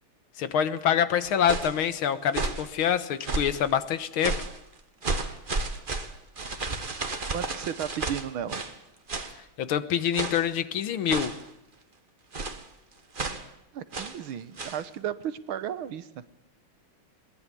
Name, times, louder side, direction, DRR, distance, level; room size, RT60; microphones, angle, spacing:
voice 1, 0.4-4.4 9.6-11.3, left 9 dB, 85° left, 12 dB, 2.0 m, -26 dB
sound 1, 1.2-1.8 2.3-2.7 3.2-3.7 4.2-4.6 5.0-8.8 9.1-9.4 10.1-10.5 11.1-11.5 12.3-12.7 13.1-13.5 13.9-14.2 14.6-14.8, right 3 dB, 30° right, 1.4 m, -32 dB
voice 2, 7.3-8.6 13.7-16.1, right 9 dB, 85° right, 13 dB, 1.9 m, -34 dB
21.5 x 19.0 x 8.4 m, 0.84 s
omnidirectional pair, 2.2 m